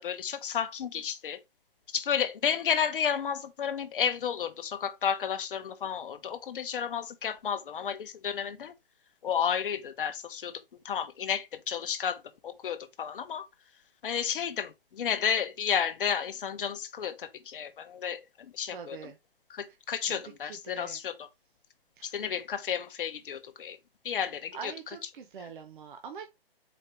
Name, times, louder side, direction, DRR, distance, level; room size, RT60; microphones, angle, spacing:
voice 1, 0.0-1.4 1.9-8.7 9.2-13.5 14.0-18.2 18.5-19.1 19.5-21.3 22.0-23.8 24.0-24.7 25.4-25.5, left 8 dB, 60° left, 0.7 m, -32 dB
voice 2, 18.7-19.2 20.0-21.0 22.0-22.1 24.5-26.3, right 6 dB, 55° right, 0.7 m, -44 dB
4.3 x 2.9 x 3.3 m
hypercardioid pair, 150°, 30 cm